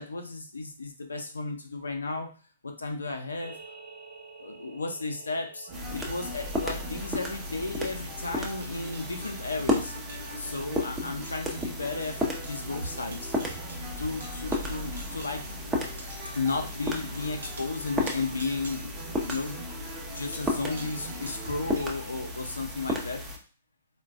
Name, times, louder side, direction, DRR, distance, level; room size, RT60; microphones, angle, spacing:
voice 1, 0.0-2.3 2.6-3.5 4.4-9.9 10.4-13.3 14.0-15.5 16.3-18.9 19.3-19.6 20.1-23.2, left 3 dB, 80° left, 3 dB, 0.5 m, -34 dB
sound 1, 3.4-21.9, right 2 dB, 75° right, 0.8 m, -50 dB
sound 2, 5.7-23.4, left 1 dB, 10° right, 0.6 m, -34 dB
sound 3, 5.7-21.7, equal, 30° right, 0.9 m, -43 dB
3.7 x 2.2 x 2.4 m, 0.39 s
figure-of-eight pair, 120°, 0 cm